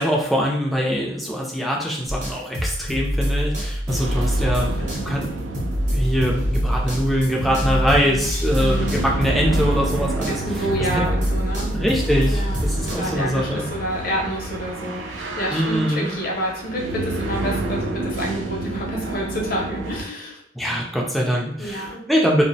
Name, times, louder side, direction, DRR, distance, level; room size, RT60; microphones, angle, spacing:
voice 1, 0.0-10.4 10.9-11.1 11.7-13.7 15.5-16.1 20.5-22.4, equal, ahead, -2 dB, 0.3 m, -23 dB
sound 1, 2.1-10.6 10.9-12.9, equal, 40° right, 0.6 m, -25 dB
sound 2, 3.9-20.0, right 2 dB, 85° right, 0.3 m, -30 dB
voice 2, 4.4-5.1 7.4-9.0 10.3-11.9 12.3-20.4 21.6-22.0, equal, 50° left, -2 dB, 0.6 m, -29 dB
2.3 x 2.0 x 2.6 m, 0.67 s
head